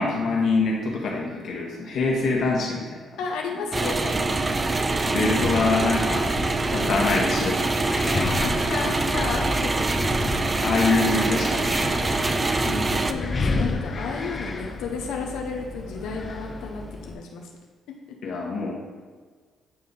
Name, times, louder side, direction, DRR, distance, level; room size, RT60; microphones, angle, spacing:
voice 1, 0.0-3.2 5.0-8.5 10.6-12.7 18.2-18.7, left 3 dB, 70° left, -2 dB, 1.5 m, -25 dB
voice 2, 3.2-4.9 8.0-9.7 11.9-17.5, left 4 dB, 90° left, 1 dB, 0.7 m, -33 dB
sound 1, 3.7-13.1, right 3 dB, 25° right, 0.4 m, -24 dB
Wind, 4.5-17.1, left 3 dB, 40° left, 0.5 m, -32 dB
8.6 x 3.3 x 4.1 m, 1.5 s
cardioid pair, 90°, 0 cm